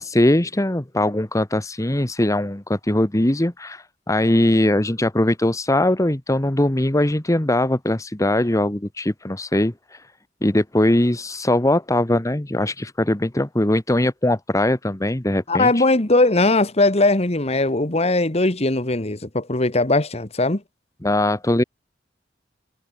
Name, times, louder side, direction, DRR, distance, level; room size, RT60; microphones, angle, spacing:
voice 1, 0.0-10.0 10.4-15.8 21.0-21.6, left 1 dB, 20° left, 1.2 m, -21 dB
voice 2, 15.5-20.6, left 2 dB, 35° left, 1.8 m, -19 dB
head